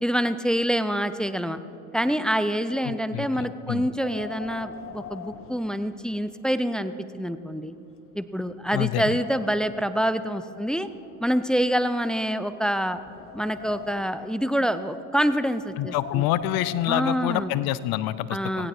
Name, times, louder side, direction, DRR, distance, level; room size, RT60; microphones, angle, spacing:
voice 1, 0.0-1.6 1.9-7.7 8.1-10.9 11.2-13.0 13.3-16.2 16.9-17.5 18.3-18.7, equal, ahead, 12 dB, 0.5 m, -26 dB
voice 2, 2.8-3.8 8.7-9.2 15.8-18.7, left 14 dB, 55° left, 17 dB, 0.7 m, -27 dB
Wind, 3.8-6.4 6.8-6.9 7.6-7.7 8.1-9.8 10.6-12.1 12.7-14.3 15.6-17.7, left 6 dB, 30° left, 0.9 m, -43 dB
17.0 x 16.5 x 4.3 m, 2.9 s
supercardioid pair, 90°, 43 cm